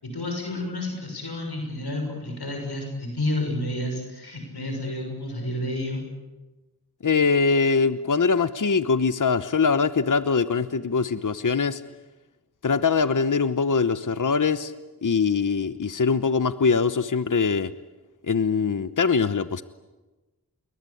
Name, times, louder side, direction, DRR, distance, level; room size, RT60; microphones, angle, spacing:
voice 1, 0.0-6.0, left 1 dB, 75° left, 2 dB, 6.6 m, -30 dB
voice 2, 7.0-11.8 12.6-14.7 15.0-17.7 18.3-19.6, left 5 dB, 50° left, 12 dB, 1.0 m, -22 dB
29.0 x 21.5 x 8.6 m, 1.1 s
cardioid pair, 45°, 39 cm